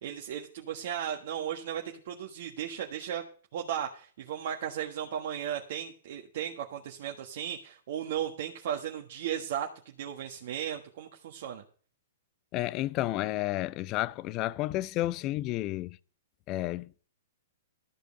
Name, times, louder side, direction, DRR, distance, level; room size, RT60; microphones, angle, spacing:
voice 1, 0.0-3.2 3.5-9.7 10.0-11.6, right 9 dB, 55° right, 1.5 m, -35 dB
voice 2, 12.5-16.0 16.5-16.9, left 16 dB, 35° left, 0.5 m, -31 dB
13.5 x 5.2 x 7.6 m
hypercardioid pair, 115°, 0 cm